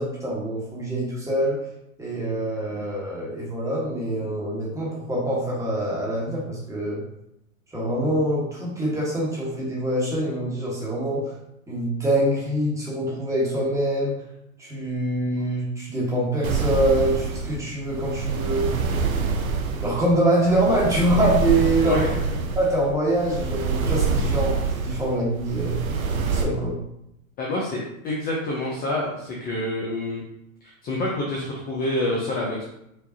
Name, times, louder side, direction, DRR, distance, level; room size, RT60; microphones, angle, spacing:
voice 1, 0.0-1.6 2.0-7.0 7.7-11.3 11.7-14.1 14.6-18.7 19.8-22.0 22.5-24.5 24.8-25.8 26.3-26.7, right 1 dB, 5° right, -6 dB, 1.3 m, -24 dB
sound 1, 16.4-26.4, right 4 dB, 80° right, 0.7 m, -26 dB
voice 2, 27.4-30.2 30.6-32.6, left 1 dB, 20° left, -3 dB, 0.5 m, -27 dB
4.9 x 2.5 x 2.8 m, 0.82 s
hypercardioid pair, 115°, 42 cm